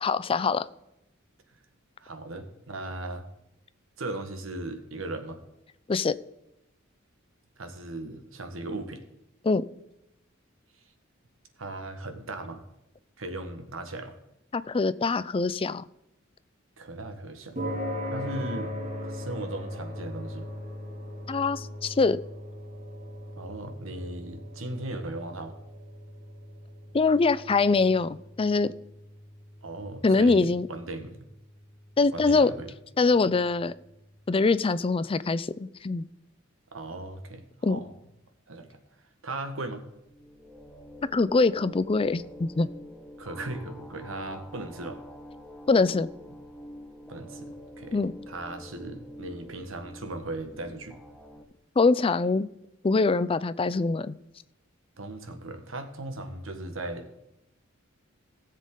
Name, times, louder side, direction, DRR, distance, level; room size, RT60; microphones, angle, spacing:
voice 1, 0.0-0.7 5.9-6.2 9.4-9.7 14.5-15.8 21.3-22.2 26.9-28.7 30.0-30.7 32.0-32.5 33.0-33.7 34.3-36.1 37.6-37.8 41.1-42.7 45.7-46.1 47.9-48.1 51.8-52.5 52.8-54.2, left 3 dB, 25° left, 16 dB, 0.4 m, -23 dB
voice 2, 2.0-3.3 4.0-5.4 7.6-9.0 11.6-12.6 13.2-14.2 16.8-17.6 18.1-18.7 19.0-20.5 23.4-25.5 29.6-31.2 32.1-32.7 36.7-37.9 38.5-38.8 39.2-39.8 43.2-45.0 47.1-51.0 55.0-57.2, right 2 dB, 75° right, 7 dB, 1.5 m, -37 dB
sound 1, 17.6-34.1, left 1 dB, 45° right, 3.7 m, -40 dB
sound 2, 39.8-51.4, equal, 5° left, 1.1 m, -46 dB
17.0 x 7.4 x 3.8 m, 0.88 s
head